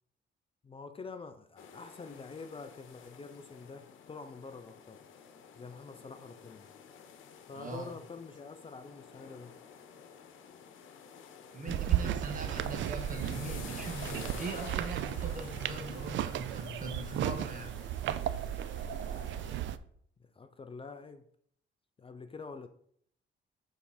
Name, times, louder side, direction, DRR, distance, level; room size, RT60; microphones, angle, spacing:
voice 1, 0.6-5.0 5.5-6.7 7.5-9.6 12.4-12.6 20.2-21.3 22.0-22.7, left 4 dB, 25° left, 0.6 m, -47 dB
sound 1, 1.6-19.6, left 7 dB, 80° left, 1.0 m, -51 dB
voice 2, 7.5-7.9 11.5-17.7, right 2 dB, 40° right, 1.5 m, -41 dB
sound 2, 11.7-19.8, right 11 dB, 70° right, 0.4 m, -35 dB
7.1 x 3.5 x 4.2 m
cardioid pair, 90°, 20 cm